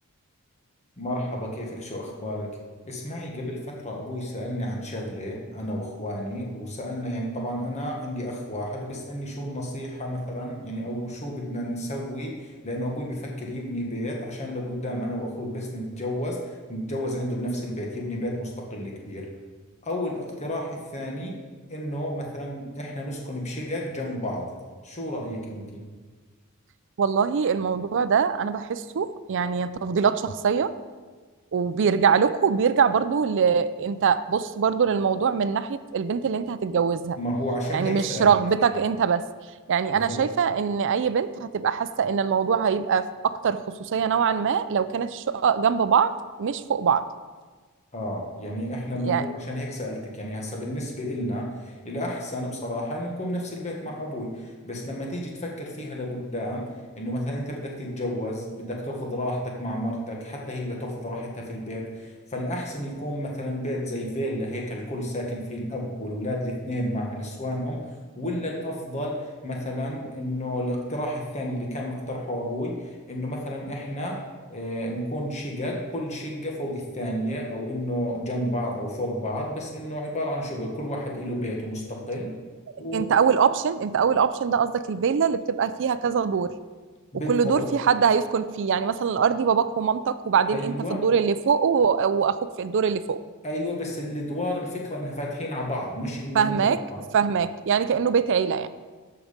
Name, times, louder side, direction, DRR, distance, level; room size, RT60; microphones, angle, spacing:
voice 1, 1.0-2.5 2.8-19.3 19.8-21.4 21.7-24.5 24.8-25.8 37.2-38.3 39.9-40.2 47.9-56.7 56.9-67.8 68.2-72.8 73.1-74.2 74.5-82.3 82.8-83.1 87.1-87.7 90.5-91.0 93.4-97.0, equal, 30° left, -1 dB, 1.6 m, -31 dB
voice 2, 27.0-30.7 31.5-37.2 37.7-39.2 39.7-47.1 48.9-49.3 82.9-86.5 87.3-93.2 96.3-96.8 97.1-98.7, right 6 dB, 55° right, 13 dB, 0.4 m, -23 dB
13.5 x 4.8 x 5.2 m, 1.4 s
head